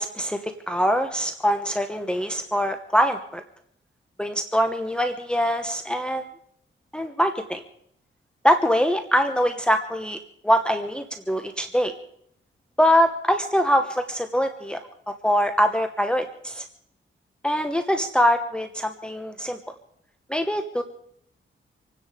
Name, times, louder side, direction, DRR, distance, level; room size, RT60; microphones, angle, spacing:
voice 1, 0.0-3.4 4.2-6.2 6.9-7.6 8.4-10.2 10.4-11.9 12.8-14.8 15.1-16.6 17.4-19.6 20.3-20.8, equal, 5° left, 6 dB, 1.1 m, -23 dB
26.5 x 9.9 x 5.0 m, 0.71 s
cardioid pair, 85°, 21 cm